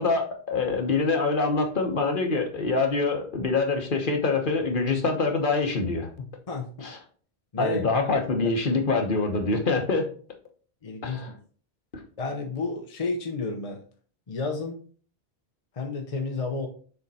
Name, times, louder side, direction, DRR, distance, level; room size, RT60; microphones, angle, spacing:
voice 1, 0.0-6.1 6.8-7.0 7.6-10.1 11.0-11.3 11.9-12.0, left 3 dB, 55° left, 4 dB, 1.2 m, -25 dB
voice 2, 6.5-6.9 7.5-7.9 10.8-11.4 12.2-13.8 14.3-14.8 15.7-16.7, left 3 dB, 35° left, 3 dB, 0.8 m, -31 dB
6.8 x 3.6 x 4.1 m, 0.43 s
omnidirectional pair, 1.1 m